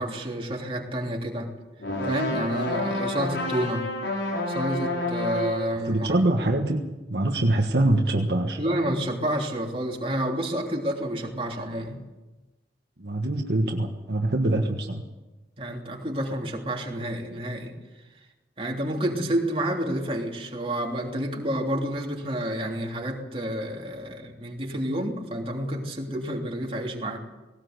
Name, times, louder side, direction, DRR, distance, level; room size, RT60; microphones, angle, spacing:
voice 1, 0.0-1.5 2.0-3.9 4.5-6.1 8.6-12.0 15.6-17.7 18.6-27.2, right 1 dB, 30° right, 0 dB, 3.2 m, -29 dB
sound 1, 1.8-5.8, left 1 dB, 90° left, 5.3 m, -29 dB
voice 2, 5.9-8.6 13.0-15.0, right 1 dB, 65° right, 2 dB, 1.5 m, -24 dB
18.5 x 18.0 x 8.1 m, 1.1 s
head